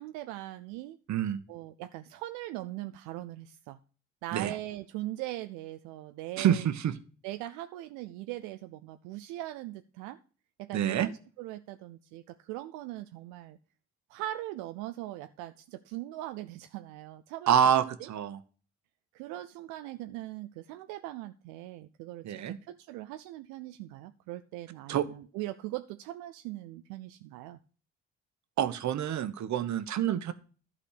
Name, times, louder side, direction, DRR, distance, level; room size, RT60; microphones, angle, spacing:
voice 1, 0.0-1.0 1.5-3.8 4.2-6.7 7.2-10.2 10.6-13.6 14.1-17.5 18.0-18.1 19.1-27.6, right 15 dB, 85° right, 10 dB, 0.5 m, -40 dB
voice 2, 1.1-1.4 4.3-4.6 6.4-6.9 10.7-11.1 17.5-18.4 22.2-22.6 24.9-25.0 28.6-30.3, right 9 dB, 60° right, 11 dB, 1.1 m, -27 dB
12.0 x 4.2 x 6.6 m, 0.39 s
supercardioid pair, 60°, 31 cm